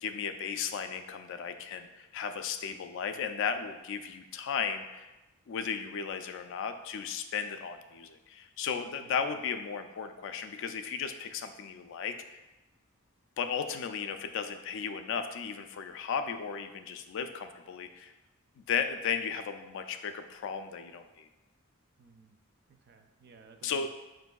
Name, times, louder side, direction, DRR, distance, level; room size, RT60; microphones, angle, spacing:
voice 1, 0.0-5.1 5.5-12.4 13.4-18.1 18.6-21.3 23.6-23.9, left 6 dB, 60° left, 8 dB, 0.3 m, -35 dB
voice 2, 22.0-22.4 22.7-23.9, right 4 dB, 50° right, 6 dB, 0.4 m, -57 dB
6.0 x 2.6 x 2.2 m, 1.1 s
head